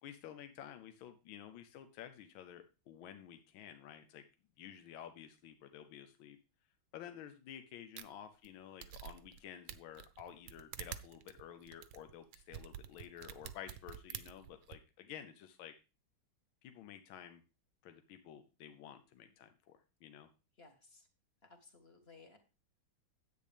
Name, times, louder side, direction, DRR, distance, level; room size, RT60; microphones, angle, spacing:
voice 1, 0.0-4.2 4.6-6.4 6.9-15.7 16.6-17.4 17.8-20.3, left 10 dB, 80° left, 8 dB, 1.5 m, -52 dB
sound 1, 8.0-8.1 8.4-8.5 8.8-9.4 9.7-14.8, right 11 dB, 70° right, 1.3 m, -48 dB
voice 2, 20.6-21.1 21.4-22.4, left 4 dB, 30° left, 5 dB, 1.6 m, -59 dB
10.0 x 8.5 x 3.4 m, 0.30 s
omnidirectional pair, 2.2 m